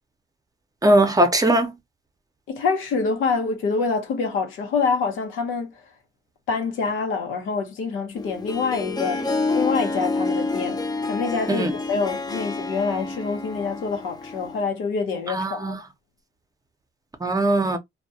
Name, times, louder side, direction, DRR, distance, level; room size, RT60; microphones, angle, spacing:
voice 1, 0.8-1.7 11.6-11.7 15.3-15.8 17.2-17.8, right 1 dB, 20° right, 0.6 m, -19 dB
voice 2, 2.5-5.7 6.5-9.2 9.5-10.8 11.1-15.8, left 4 dB, 90° left, 0.8 m, -26 dB
Harp, 8.1-14.7, left 3 dB, 20° left, 0.5 m, -28 dB
2.2 x 2.2 x 2.7 m
cardioid pair, 90°, 20 cm